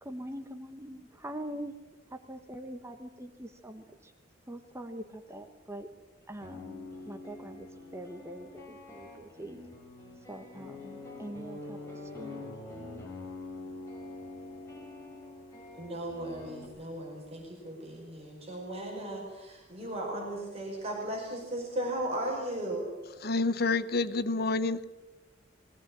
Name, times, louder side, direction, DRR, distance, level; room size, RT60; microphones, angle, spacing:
voice 1, 0.0-1.7 2.3-4.1 4.5-5.9 6.3-7.7 7.9-9.6 10.3-12.4, right 1 dB, 15° right, 6 dB, 1.2 m, -43 dB
sound 1, 6.2-16.7, left 2 dB, 15° left, 5.4 m, -45 dB
voice 2, 15.8-22.8, right 1 dB, 35° right, -1 dB, 5.2 m, -36 dB
voice 3, 23.2-24.8, left 3 dB, 55° left, 14 dB, 0.9 m, -28 dB
21.0 x 16.5 x 8.8 m, 1.1 s
head